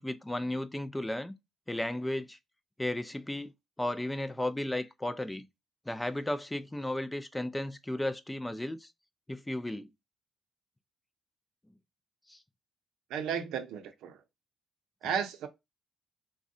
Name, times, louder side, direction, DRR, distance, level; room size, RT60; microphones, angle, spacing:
voice 1, 0.0-1.3 1.7-2.4 2.8-3.5 3.8-5.5 5.9-8.9 9.3-9.9 12.3-12.4, left 1 dB, 10° left, 0.3 m, -34 dB
voice 2, 13.1-14.2 15.0-15.5, right 7 dB, 85° right, 0.5 m, -34 dB
3.5 x 2.1 x 2.6 m
cardioid pair, 90°, 0 cm